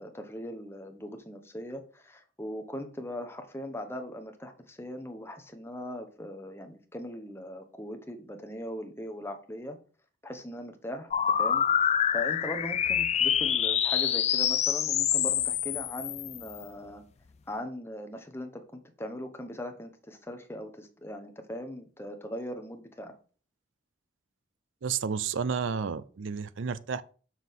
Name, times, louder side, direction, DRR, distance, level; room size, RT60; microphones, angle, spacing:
voice 1, 0.0-9.8 10.2-11.1 11.4-11.7 12.1-17.0 17.5-23.1, left 1 dB, 10° left, 0.9 m, -39 dB
sound 1, 11.1-16.6, left 9 dB, 35° left, 0.3 m, -26 dB
voice 2, 24.8-27.0, right 6 dB, 80° right, 0.5 m, -31 dB
7.3 x 6.0 x 3.6 m
head